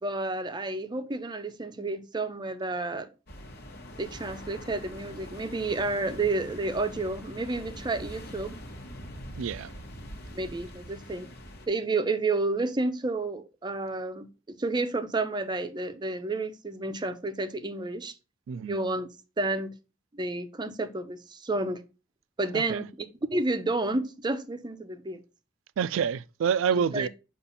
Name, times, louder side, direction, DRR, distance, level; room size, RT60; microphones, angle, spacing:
voice 1, 0.0-3.1 4.0-8.6 10.3-11.3 11.7-18.1 18.6-19.1 19.4-19.7 20.1-21.8 22.4-25.2 26.7-27.1, right 2 dB, 25° right, 0.6 m, -30 dB
sound 1, 3.3-11.7, equal, 55° left, 1.1 m, -43 dB
voice 2, 9.4-9.8 18.5-18.8 22.5-22.8 25.8-27.1, right 7 dB, 80° right, 0.3 m, -28 dB
6.9 x 2.5 x 5.4 m
head